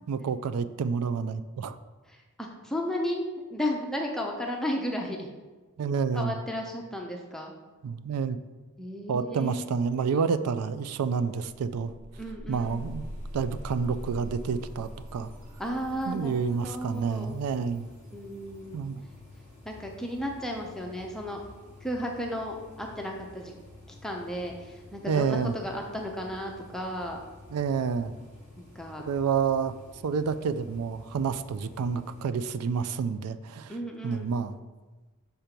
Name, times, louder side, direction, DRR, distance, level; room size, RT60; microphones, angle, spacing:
voice 1, 0.1-1.8 5.8-6.4 7.8-8.4 9.1-11.9 12.5-13.1 13.3-15.3 16.1-17.9 18.7-19.0 25.1-25.5 27.5-28.1 29.1-29.7 30.0-33.7 34.0-34.6, right 5 dB, 85° right, 13 dB, 0.4 m, -29 dB
voice 2, 2.1-3.2 3.5-5.3 6.1-7.5 8.8-9.7 12.2-12.9 15.6-17.4 18.1-18.9 19.7-21.4 21.8-23.5 23.9-27.2 28.6-29.0 33.7-34.4, equal, ahead, 0 dB, 0.5 m, -34 dB
sound 1, 10.6-10.7 11.0-17.8, equal, 60° right, 1.0 m, -43 dB
sound 2, 12.5-32.3, left 2 dB, 30° right, 1.8 m, -51 dB
5.7 x 4.4 x 5.1 m, 1.3 s
head